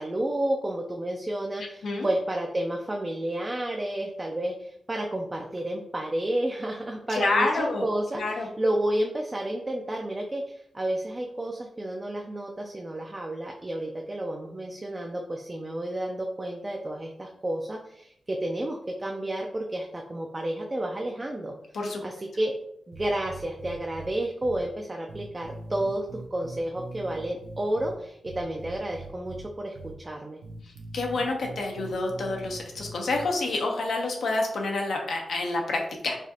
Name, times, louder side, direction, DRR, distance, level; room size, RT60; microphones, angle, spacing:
voice 1, 0.0-21.5 22.0-22.5 22.9-30.4, right 1 dB, 20° right, 0 dB, 0.3 m, -31 dB
voice 2, 7.1-7.8 8.1-8.5 21.7-22.0 30.9-36.2, left 2 dB, 70° left, 1 dB, 0.7 m, -28 dB
sound 1, 22.9-24.1 24.4-24.6 25.1-27.9 28.3-29.4 29.8-29.9 30.4-33.3, right 3 dB, 85° right, 0.7 m, -42 dB
4.8 x 2.5 x 2.8 m, 0.74 s
wide cardioid pair, 175°, 0 cm